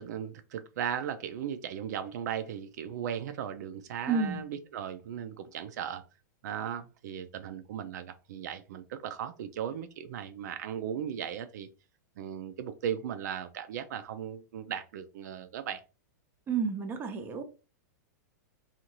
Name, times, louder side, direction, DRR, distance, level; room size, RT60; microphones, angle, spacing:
voice 1, 0.0-6.0 6.4-11.7 12.2-15.8, right 9 dB, 65° right, 0.4 m, -37 dB
voice 2, 4.1-4.4 16.5-17.4, right 5 dB, 20° right, 0.6 m, -30 dB
2.6 x 2.4 x 2.9 m
hypercardioid pair, 125°, 10 cm